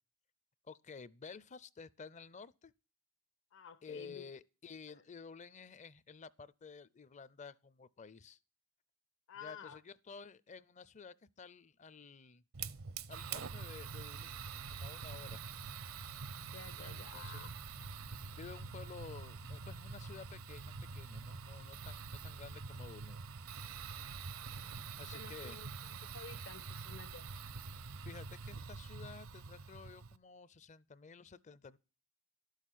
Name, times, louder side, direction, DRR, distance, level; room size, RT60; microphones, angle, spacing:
voice 1, 0.6-2.7 3.8-8.4 9.4-12.4 13.1-15.4 16.8-17.4 18.3-23.2 25.0-25.6 28.0-31.8, left 5 dB, 35° left, 0.5 m, -52 dB
voice 2, 3.5-4.2 4.9-5.0 9.3-9.8 16.5-17.5 25.1-27.3, left 6 dB, 65° left, 1.1 m, -52 dB
Fire, 12.5-30.2, right 5 dB, 80° right, 0.7 m, -46 dB
sound 1, 14.4-22.0, equal, 90° left, 0.7 m, -61 dB
12.5 x 6.5 x 9.1 m
head